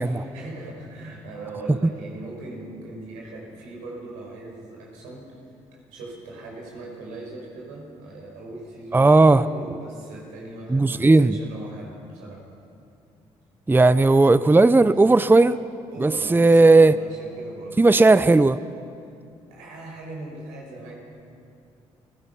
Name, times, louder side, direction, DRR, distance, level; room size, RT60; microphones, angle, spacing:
voice 1, 0.1-5.3 5.7-12.5 15.9-17.8 19.4-21.0, right 2 dB, 90° right, -1 dB, 5.0 m, -39 dB
voice 2, 8.9-9.4 10.7-11.4 13.7-15.6 16.0-16.9 17.8-18.6, right 3 dB, 15° right, 15 dB, 0.6 m, -15 dB
29.0 x 15.5 x 5.8 m, 2.5 s
supercardioid pair, 55°, 14 cm